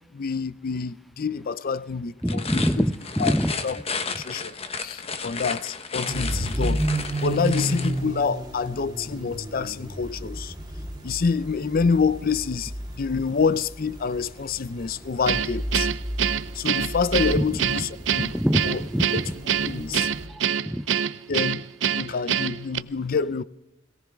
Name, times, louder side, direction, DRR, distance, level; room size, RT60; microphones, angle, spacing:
voice 1, 0.1-2.6 3.2-3.3 3.6-3.8 4.1-4.5 4.8-6.8 7.2-10.5 11.0-12.7 13.0-15.9 16.5-18.3 18.6-18.8 19.1-19.2 19.7-20.1 21.3-21.6 21.9-23.4, left 5 dB, 50° left, 0.5 m, -27 dB
sound 1, 2.2-8.0, left 5 dB, 30° left, 1.1 m, -33 dB
voice 2, 2.2-3.5 17.3-17.5 18.2-19.1 20.3-20.9, equal, ahead, 0.6 m, -25 dB
sound 2, 6.1-20.3, right 1 dB, 20° right, 3.6 m, -32 dB
Guitar, 15.3-22.8, right 8 dB, 70° right, 0.6 m, -25 dB
22.0 x 17.5 x 3.5 m
head